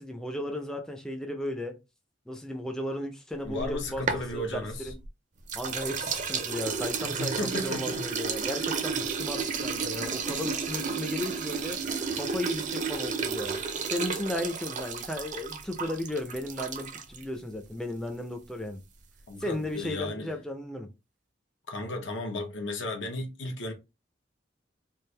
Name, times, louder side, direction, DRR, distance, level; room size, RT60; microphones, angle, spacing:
voice 1, 0.0-1.8 2.3-4.0 4.3-5.0 5.5-11.8 12.1-13.6 13.9-18.8 19.4-20.9, left 1 dB, 5° left, 0.5 m, -35 dB
voice 2, 3.4-4.9 7.0-8.1 8.6-8.8 19.3-20.3 21.7-23.7, left 2 dB, 80° left, 0.9 m, -35 dB
sound 1, 3.5-5.1 5.5-17.2, right 5 dB, 40° right, 0.6 m, -32 dB
3.4 x 2.5 x 3.2 m
head